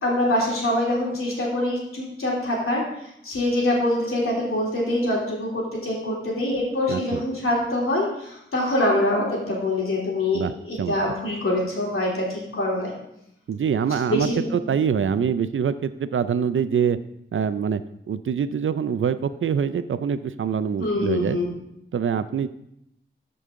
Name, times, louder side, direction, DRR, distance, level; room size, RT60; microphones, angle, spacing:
voice 1, 0.0-2.8 3.2-12.9 14.1-14.5 20.8-21.5, left 1 dB, 85° left, -4 dB, 3.1 m, -24 dB
voice 2, 6.9-7.2 10.3-10.9 13.5-17.0 17.3-17.8 18.1-21.4 21.9-22.5, right 7 dB, 75° right, 13 dB, 0.5 m, -24 dB
13.5 x 5.5 x 3.7 m, 0.78 s
wide cardioid pair, 105°, 21 cm